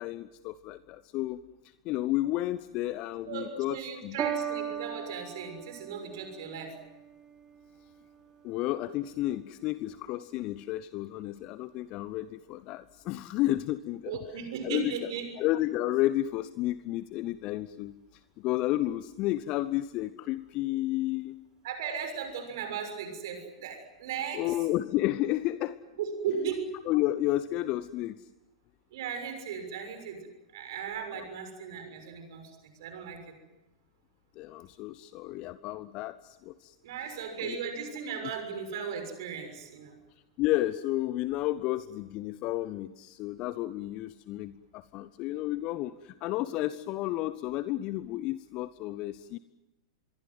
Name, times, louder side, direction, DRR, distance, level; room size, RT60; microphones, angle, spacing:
voice 1, 0.0-1.4 1.8-4.2 8.4-14.1 14.6-15.1 15.4-17.9 18.4-21.4 24.3-25.8 26.9-28.3 31.1-31.2 34.4-36.7 37.4-37.6 40.4-49.4, left 15 dB, 35° left, 16 dB, 0.8 m, -31 dB
voice 2, 3.3-6.7 14.0-15.3 21.6-24.5 26.0-26.7 28.9-30.3 30.5-32.5 32.8-33.2 36.8-40.0, right 7 dB, 55° right, 7 dB, 6.3 m, -36 dB
Piano, 4.2-10.8 11.6-11.7, right 8 dB, 25° right, 3.2 m, -40 dB
26.0 x 22.5 x 7.9 m, 0.99 s
figure-of-eight pair, 95°, 3 cm